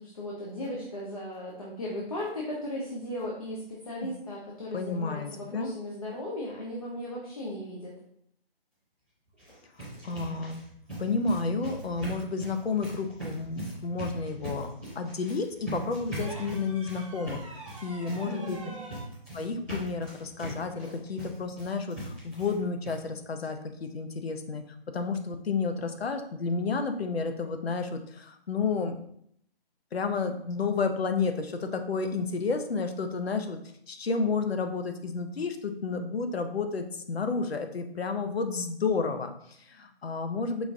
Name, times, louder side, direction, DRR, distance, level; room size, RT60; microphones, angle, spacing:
voice 1, 0.0-8.0 18.2-18.8, left 1 dB, 35° left, -4 dB, 0.7 m, -36 dB
voice 2, 4.7-5.7 10.0-10.6 11.0-18.6 19.3-29.0 29.9-33.6 33.9-40.7, left 4 dB, 75° left, 7 dB, 0.7 m, -31 dB
sound 1, 9.3-22.6 22.8-23.0 23.4-23.5 23.8-23.9, right 1 dB, 5° left, 1.1 m, -40 dB
sound 2, 16.2-19.1 20.8-21.0, right 2 dB, 30° right, 0.6 m, -45 dB
5.0 x 2.6 x 3.5 m, 0.69 s
hypercardioid pair, 165°, 31 cm